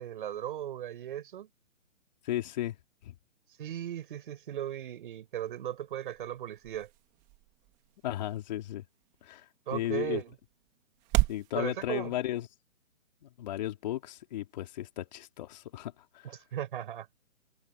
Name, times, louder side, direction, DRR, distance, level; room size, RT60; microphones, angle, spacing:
voice 1, 0.0-1.5 3.6-6.9 9.7-10.3 11.5-12.1 16.2-17.1, right 11 dB, 40° right, 6.8 m, -37 dB
voice 2, 2.2-2.8 3.0-3.1 8.0-8.8 9.2-10.2 11.3-12.5 13.2-16.4, left 13 dB, 35° left, 3.8 m, -35 dB
sound 1, 5.2-11.5, right 21 dB, 15° right, 2.0 m, -36 dB
hypercardioid pair, 165°, 39 cm